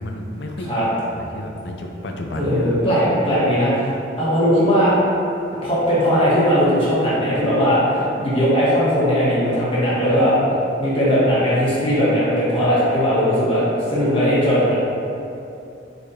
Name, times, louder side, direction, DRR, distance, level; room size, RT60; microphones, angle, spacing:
voice 1, 0.0-2.8, left 1 dB, 65° left, 2 dB, 0.5 m, -31 dB
voice 2, 2.3-4.9 5.6-10.4 10.8-14.7, equal, 30° left, -10 dB, 1.3 m, -18 dB
4.7 x 4.1 x 2.7 m, 2.7 s
head